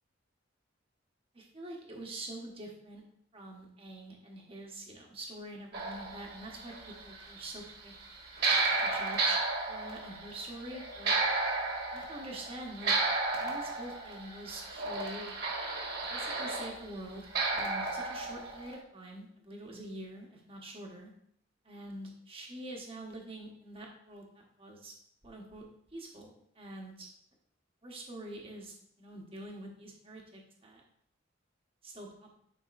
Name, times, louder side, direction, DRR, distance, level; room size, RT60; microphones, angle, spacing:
voice 1, 1.3-3.0 3.3-6.7 7.0-7.9 8.8-9.4 9.7-11.1 11.9-12.9 13.4-15.3 16.1-17.3 17.5-21.1 21.6-24.9 25.2-25.6 25.9-27.1 27.8-30.8 31.8-32.3, right 1 dB, 30° right, 0 dB, 1.2 m, -45 dB
sound 1, 5.7-7.7 8.0-16.8 17.3-18.7, right 3 dB, 55° right, 1.6 m, -33 dB
9.5 x 5.2 x 2.6 m, 0.69 s
head